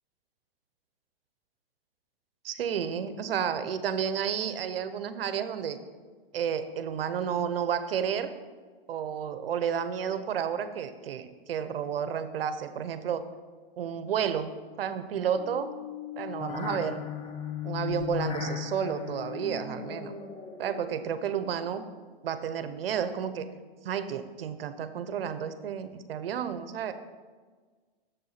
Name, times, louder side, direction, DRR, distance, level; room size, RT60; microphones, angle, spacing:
voice 1, 2.4-5.8 6.3-8.3 8.9-13.2 13.8-15.7 16.2-17.0 17.6-20.1 20.6-21.8 22.2-23.5 23.8-26.9, right 8 dB, 80° right, 11 dB, 0.9 m, -31 dB
sound 1, 15.3-21.7, left 7 dB, 15° left, 0.7 m, -37 dB
7.3 x 6.9 x 5.8 m, 1.4 s
hypercardioid pair, 150°, 29 cm